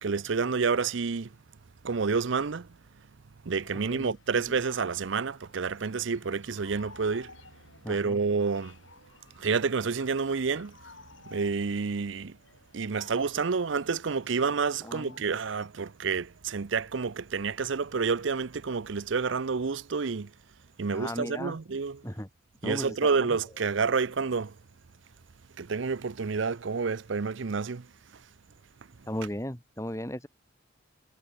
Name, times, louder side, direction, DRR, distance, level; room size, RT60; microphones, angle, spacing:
voice 1, 0.0-1.3 1.8-2.7 3.4-7.3 7.9-8.8 9.4-10.8 11.2-12.4 12.7-20.3 20.8-22.0 22.6-24.5 25.6-27.9, right 5 dB, 70° right, 0.6 m, -29 dB
sound 1, 3.6-15.7, left 4 dB, 75° left, 5.7 m, -55 dB
voice 2, 3.9-4.4 7.8-8.2 14.8-15.1 20.9-21.6 22.0-22.3 22.6-23.4 29.1-30.3, equal, 15° left, 3.5 m, -36 dB
head